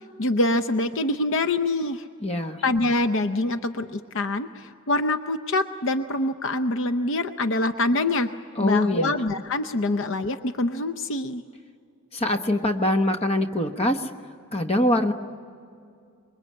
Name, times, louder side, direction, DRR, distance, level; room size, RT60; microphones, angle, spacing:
voice 1, 0.2-2.1 2.6-8.3 8.6-11.4, left 2 dB, 60° left, 9 dB, 0.7 m, -25 dB
voice 2, 2.2-2.6 8.6-9.1 12.1-14.1 14.5-15.1, left 1 dB, 30° left, 6 dB, 1.2 m, -23 dB
25.5 x 22.5 x 8.7 m, 2.4 s
head